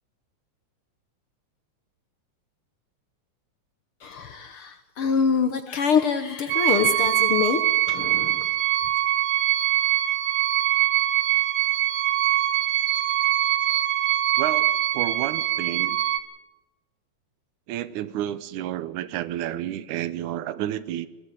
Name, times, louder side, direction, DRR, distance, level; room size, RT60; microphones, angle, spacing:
voice 1, 4.0-7.6 7.9-8.5, left 6 dB, 60° left, 9 dB, 1.5 m, -25 dB
sound 1, 6.5-16.2, right 13 dB, 70° right, 2.2 m, -23 dB
voice 2, 14.4-14.7 14.9-16.0 17.7-21.1, right 12 dB, 85° right, 16 dB, 2.3 m, -30 dB
21.0 x 13.5 x 9.9 m, 1.1 s
omnidirectional pair, 3.4 m